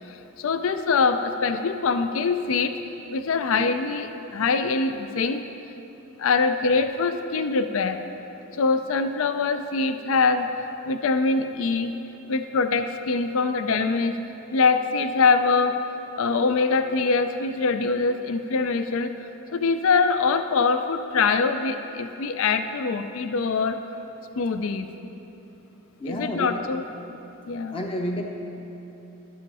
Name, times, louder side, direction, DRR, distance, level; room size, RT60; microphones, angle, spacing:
voice 1, 0.4-2.7 3.1-5.4 6.2-8.0 8.6-10.5 10.9-11.9 12.3-14.2 14.5-15.8 16.2-19.1 19.5-23.8 24.4-24.9 26.1-26.8 27.5-27.8, left 4 dB, 65° left, 9 dB, 0.4 m, -23 dB
voice 2, 26.0-26.6 27.7-28.2, equal, 25° left, 1 dB, 0.7 m, -30 dB
12.0 x 7.7 x 4.1 m, 3.0 s
head